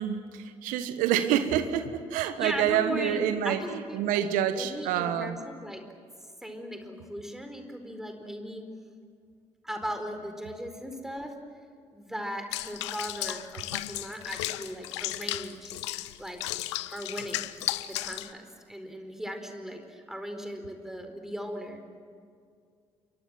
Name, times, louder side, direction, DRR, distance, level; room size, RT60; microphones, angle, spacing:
voice 1, 0.0-5.4, right 10 dB, 65° right, 10 dB, 1.5 m, -27 dB
voice 2, 2.4-4.3 4.6-5.8 6.4-8.7 9.6-11.4 11.9-15.7 16.2-16.4 16.9-17.5 17.8-21.8, equal, 5° right, 6 dB, 4.5 m, -38 dB
Water / Bathtub (filling or washing), 12.5-18.3, left 16 dB, 70° left, 0.7 m, -34 dB
28.5 x 24.0 x 7.6 m, 2.2 s
figure-of-eight pair, 45°, 15 cm